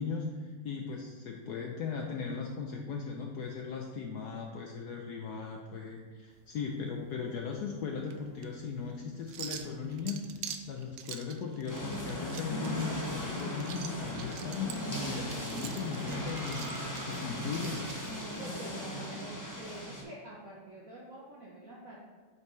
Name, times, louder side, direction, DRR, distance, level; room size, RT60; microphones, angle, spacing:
voice 1, 0.0-17.9, left 5 dB, 90° left, 1 dB, 0.8 m, -38 dB
sound 1, 6.3-18.5, right 9 dB, 85° right, 0.9 m, -47 dB
sound 2, 11.7-20.0, equal, 25° left, 0.4 m, -37 dB
voice 2, 18.4-22.0, right 2 dB, 55° right, -5 dB, 1.0 m, -47 dB
8.1 x 5.3 x 3.1 m, 1.5 s
omnidirectional pair, 2.4 m